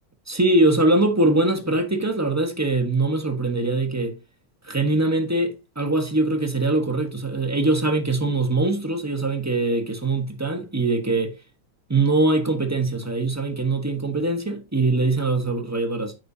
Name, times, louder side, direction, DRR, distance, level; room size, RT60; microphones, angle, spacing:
voice 1, 0.3-4.2 4.6-11.3 11.9-16.2, right 2 dB, 10° right, 0.9 m, -22 dB
9.1 x 6.2 x 2.8 m
omnidirectional pair, 2.0 m